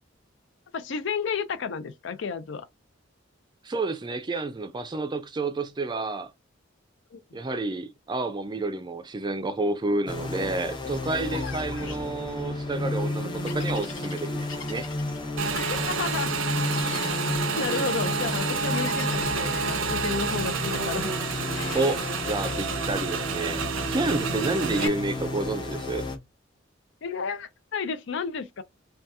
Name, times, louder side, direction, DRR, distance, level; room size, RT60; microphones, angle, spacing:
voice 1, 0.7-2.7 7.1-7.2 15.6-16.3 17.5-21.1 24.8-25.0 27.0-28.6, left 5 dB, 65° left, 0.5 m, -32 dB
voice 2, 3.6-6.3 7.3-14.8 21.7-23.6 23.9-26.1, right 2 dB, 25° right, 0.4 m, -29 dB
sound 1, 10.1-26.2, left 2 dB, 25° left, 0.6 m, -32 dB
sound 2, 11.3-12.1 13.5-15.2 16.7-17.2 18.7-19.6 21.6-22.0, left 5 dB, 85° left, 1.2 m, -41 dB
Motorcycle / Engine, 15.4-24.9, right 5 dB, 90° right, 0.6 m, -29 dB
2.8 x 2.3 x 3.4 m
head